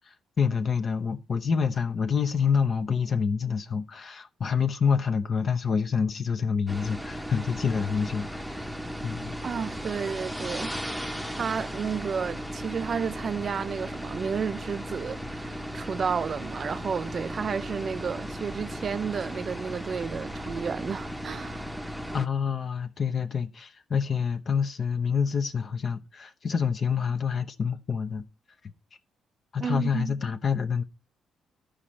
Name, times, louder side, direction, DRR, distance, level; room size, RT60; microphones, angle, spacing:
voice 1, 0.0-8.7 9.0-9.4 22.1-28.2 29.5-30.8, left 6 dB, 45° left, 0.8 m, -27 dB
sound 1, 6.7-22.3, equal, ahead, 0.8 m, -36 dB
voice 2, 9.4-11.0 11.3-21.7 29.6-30.2, right 6 dB, 45° right, 0.5 m, -32 dB
12.5 x 5.1 x 4.3 m
cardioid pair, 90°, 0 cm